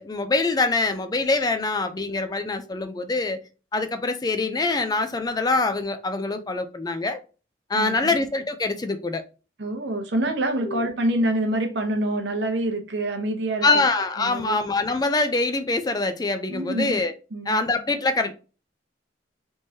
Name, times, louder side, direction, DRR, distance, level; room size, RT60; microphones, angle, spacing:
voice 1, 0.0-3.4 3.7-7.2 7.7-9.2 10.7-10.9 13.6-17.1 17.5-18.3, left 3 dB, 20° left, 0.4 m, -24 dB
voice 2, 7.7-8.1 9.6-13.7 14.2-14.6 16.5-17.0 17.3-17.6, right 1 dB, 65° right, 0.8 m, -26 dB
3.5 x 3.1 x 2.7 m
head